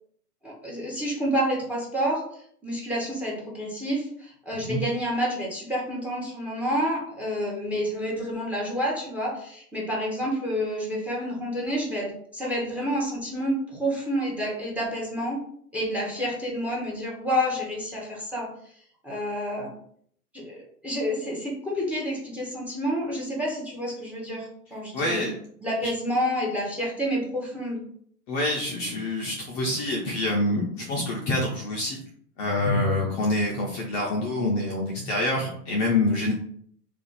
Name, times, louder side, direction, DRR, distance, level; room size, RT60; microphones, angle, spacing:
voice 1, 0.4-2.2 2.6-15.4 15.7-18.5 19.0-19.7 20.3-25.3 25.6-27.8, equal, 5° right, -2 dB, 0.8 m, -29 dB
voice 2, 24.9-25.3 25.8-25.9 28.3-32.0 32.4-36.3, left 2 dB, 30° left, -2 dB, 0.5 m, -26 dB
2.5 x 2.4 x 3.9 m, 0.64 s
hypercardioid pair, 115°, 47 cm